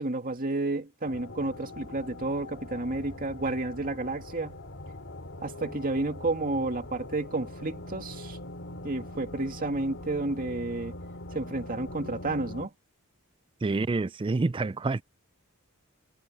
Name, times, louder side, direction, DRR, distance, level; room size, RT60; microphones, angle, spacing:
voice 1, 0.0-4.6 5.4-8.4 8.8-10.9 11.3-12.7, right 2 dB, 40° right, 2.3 m, -31 dB
sound 1, 1.1-12.7, left 1 dB, 55° left, 3.4 m, -42 dB
voice 2, 13.6-15.0, right 3 dB, 25° right, 0.4 m, -27 dB
head